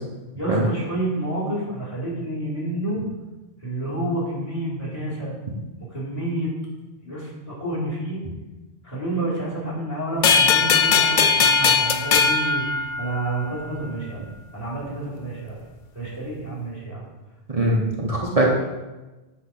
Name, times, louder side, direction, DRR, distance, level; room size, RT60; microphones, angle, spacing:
voice 1, 0.4-3.0 3.6-5.3 5.9-6.5 7.0-8.2 8.8-14.2 14.5-15.6 15.9-17.1, right 1 dB, 40° left, -6 dB, 3.4 m, -29 dB
sound 1, 10.2-13.5, left 5 dB, 55° left, 0.7 m, -19 dB
voice 2, 17.5-18.5, right 1 dB, 35° right, -3 dB, 1.1 m, -21 dB
8.3 x 4.6 x 5.9 m, 1.1 s
omnidirectional pair, 1.1 m